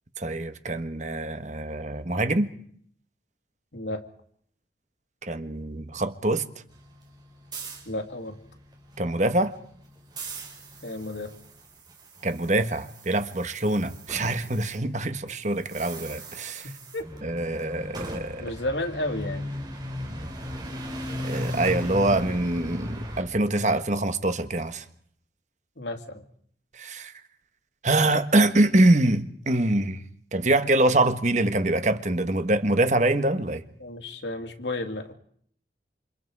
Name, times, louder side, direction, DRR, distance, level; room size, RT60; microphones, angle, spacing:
voice 1, 0.2-2.5 5.2-6.5 9.0-9.5 12.2-16.7 17.2-18.5 21.2-24.8 26.7-27.1 27.8-30.0 30.3-33.6, right 2 dB, 40° right, 9 dB, 1.6 m, -24 dB
voice 2, 3.7-4.0 7.9-8.4 10.8-11.3 16.9-17.0 18.4-19.5 25.8-26.2 33.8-35.1, left 1 dB, 85° left, 6 dB, 2.8 m, -32 dB
sound 1, 6.7-14.8 15.0-23.2, equal, 25° right, 5.0 m, -37 dB
28.5 x 27.0 x 4.9 m, 0.62 s
head